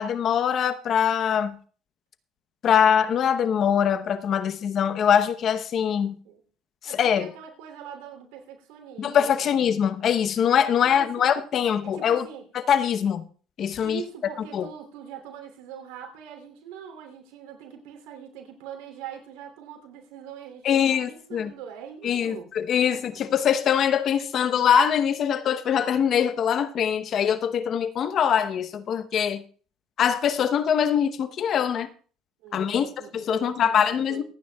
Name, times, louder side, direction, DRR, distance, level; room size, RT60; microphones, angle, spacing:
voice 1, 0.0-1.6 2.6-6.2 6.9-7.3 9.0-12.2 12.7-13.2 13.6-14.0 14.5-14.7 20.6-21.5 22.0-29.4 30.0-31.9 32.5-32.9 33.1-34.2, left 8 dB, 50° left, 0.8 m, -23 dB
voice 2, 6.0-6.4 6.8-9.5 10.8-11.3 11.8-12.4 13.8-22.5 22.8-23.2 32.4-34.2, right 8 dB, 85° right, 2.9 m, -42 dB
26.5 x 9.4 x 2.3 m
supercardioid pair, 100°, 0 cm